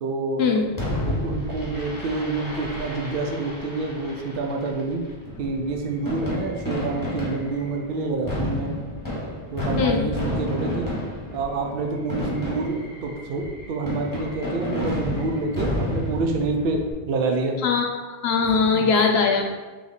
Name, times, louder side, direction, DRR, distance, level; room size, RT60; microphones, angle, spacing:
voice 1, 0.0-5.0 5.4-8.7 9.5-10.9 11.3-17.6 18.7-18.9, right 3 dB, 65° right, 2 dB, 0.7 m, -27 dB
Fireworks, 0.8-16.9, left 1 dB, 20° left, 0.9 m, -31 dB
voice 2, 17.6-19.6, left 5 dB, 80° left, 3 dB, 0.9 m, -21 dB
3.2 x 3.1 x 4.0 m, 1.3 s
omnidirectional pair, 1.0 m